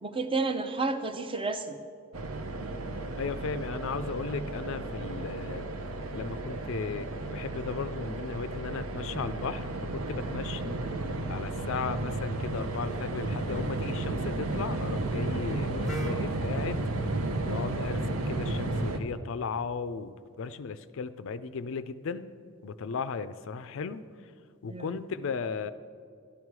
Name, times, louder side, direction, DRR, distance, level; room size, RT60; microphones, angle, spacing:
voice 1, 0.0-1.8 11.5-11.7 15.9-16.4 24.7-25.0, right 3 dB, 25° right, 8 dB, 0.6 m, -32 dB
sound 1, 2.1-19.0, right 2 dB, 70° right, 0.8 m, -33 dB
voice 2, 3.2-5.7 6.1-10.7 11.3-16.8 17.5-22.3 22.6-24.0 24.6-25.7, left 5 dB, 60° left, 13 dB, 0.4 m, -36 dB
Wind instrument woodwind instrument, 15.8-19.7, equal, ahead, 1.0 m, -49 dB
12.5 x 11.5 x 4.7 m, 2.3 s
head